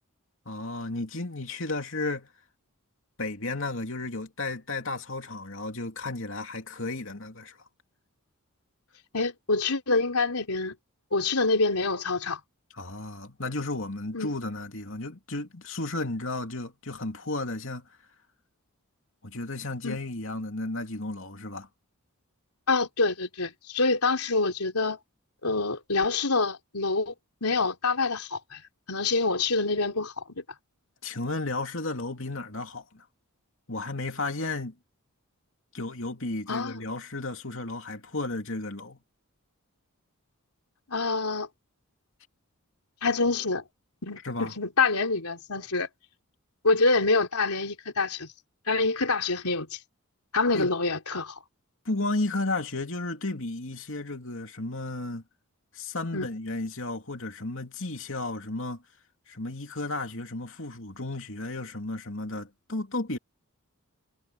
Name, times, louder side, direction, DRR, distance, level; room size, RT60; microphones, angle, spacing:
voice 1, 0.5-2.3 3.2-7.6 12.7-17.9 19.2-21.7 31.0-33.0 33.7-34.7 35.7-39.0 44.2-44.5 50.5-50.7 51.8-55.2 55.7-58.8 59.3-63.2, left 2 dB, 60° left, 3.0 m, -33 dB
voice 2, 9.1-10.7 11.1-12.4 14.1-14.3 19.8-20.0 22.7-25.0 25.4-27.1 27.4-28.6 28.9-30.4 36.5-36.8 40.9-41.5 43.0-43.6 44.0-45.9 46.6-48.3 48.7-49.8 50.3-51.4 56.1-56.3, left 3 dB, 90° left, 3.8 m, -26 dB
head